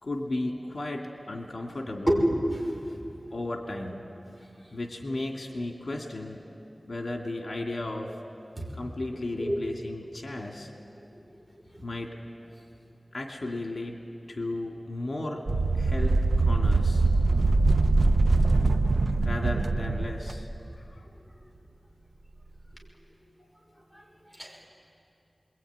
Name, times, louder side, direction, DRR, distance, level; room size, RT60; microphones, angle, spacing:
voice 1, 0.0-2.2 3.3-4.1 4.7-6.4 6.9-8.2 8.7-10.7 11.8-12.2 13.1-14.0 14.3-15.4 15.7-17.1 19.2-21.1, left 2 dB, 60° left, 1 dB, 2.5 m, -35 dB
voice 2, 2.1-2.9 8.6-8.7 9.4-9.6 11.7-11.8 23.9-24.0 24.4-24.7, equal, 15° right, -1 dB, 5.8 m, -27 dB
sound 1, 15.5-20.4, right 3 dB, 80° right, 0.8 m, -23 dB
27.0 x 22.0 x 9.5 m, 2.6 s
wide cardioid pair, 65°, 0 cm